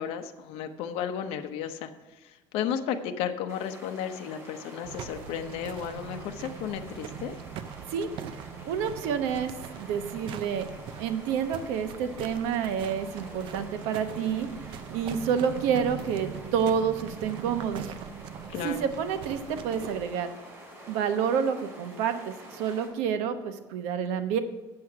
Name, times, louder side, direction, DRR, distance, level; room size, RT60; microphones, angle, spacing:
voice 1, 0.0-1.9 2.5-7.3 18.5-18.8, left 8 dB, 70° left, 6 dB, 0.8 m, -33 dB
sound 1, 3.5-22.9, right 1 dB, 30° right, 2.8 m, -47 dB
sound 2, 4.8-20.0, right 9 dB, 55° right, 0.5 m, -41 dB
voice 2, 7.9-10.7 11.0-14.5 14.9-17.9 18.6-20.3 20.9-24.4, right 7 dB, 85° right, 8 dB, 0.9 m, -29 dB
7.8 x 7.6 x 5.8 m, 1.1 s
cardioid pair, 155°, 10 cm